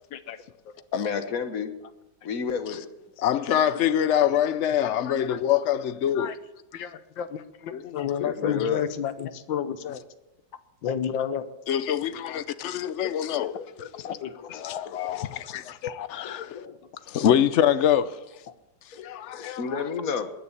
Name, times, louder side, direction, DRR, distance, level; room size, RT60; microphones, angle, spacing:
voice 1, 0.9-1.7 2.2-2.9 8.2-8.8 13.0-15.5 16.2-16.7 18.9-20.3, left 6 dB, 50° left, 1.6 m, -32 dB
voice 2, 3.2-6.3 7.7-8.1 11.7-13.5 13.8-13.9 14.5-16.6 17.1-18.2 19.0-19.8, left 10 dB, 70° left, 0.6 m, -25 dB
voice 3, 5.1-5.4 6.2-6.3 6.7-10.0 10.8-11.5 14.0-14.5 16.7-16.8, left 9 dB, 85° left, 1.7 m, -31 dB
20.5 x 6.9 x 8.7 m
omnidirectional pair, 2.0 m